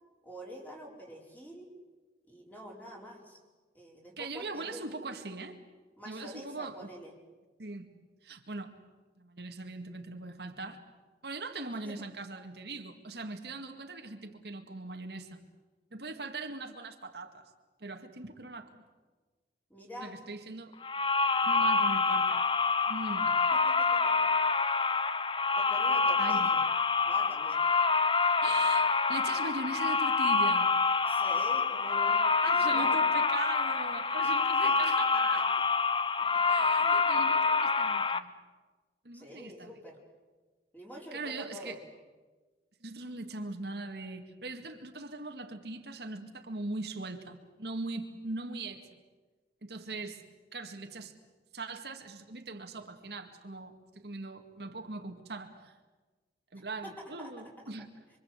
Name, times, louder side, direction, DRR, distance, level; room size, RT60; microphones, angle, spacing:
voice 1, 0.2-1.7 2.3-3.4 3.7-4.9 6.0-7.1 11.8-12.1 19.7-20.2 23.5-24.5 25.5-26.6 27.0-27.6 31.1-33.0 34.2-34.3 34.6-35.2 36.2-37.4 39.1-40.0 40.7-41.8 56.8-57.3, equal, 10° left, -1 dB, 4.9 m, -47 dB
voice 2, 4.2-5.6 6.1-6.9 7.6-7.9 8.2-8.8 9.2-10.8 11.2-15.4 15.9-17.4 17.8-18.8 20.0-20.7 21.4-22.4 22.9-23.4 26.2-26.5 28.4-30.7 32.4-35.6 36.5-38.3 39.0-39.8 41.1-41.8 42.8-48.9 49.6-50.2 50.5-51.1 51.5-55.7 56.5-57.9, right 3 dB, 65° right, 4 dB, 2.0 m, -40 dB
sound 1, 20.8-38.2, left 4 dB, 25° left, 0.8 m, -27 dB
26.0 x 25.5 x 8.2 m, 1.3 s
head